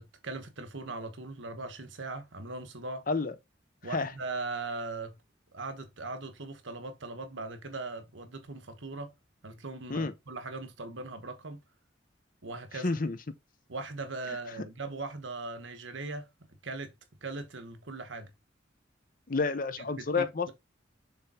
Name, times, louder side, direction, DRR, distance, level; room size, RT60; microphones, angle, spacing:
voice 1, 0.0-3.0 3.8-5.1 5.5-9.1 9.4-11.6 12.4-13.0 13.7-16.3 16.6-16.9 17.2-18.3 19.9-20.5, right 3 dB, 75° right, 1.3 m, -39 dB
voice 2, 12.7-13.2 14.3-14.4 19.3-20.5, left 4 dB, 45° left, 0.7 m, -30 dB
6.7 x 3.5 x 4.3 m
head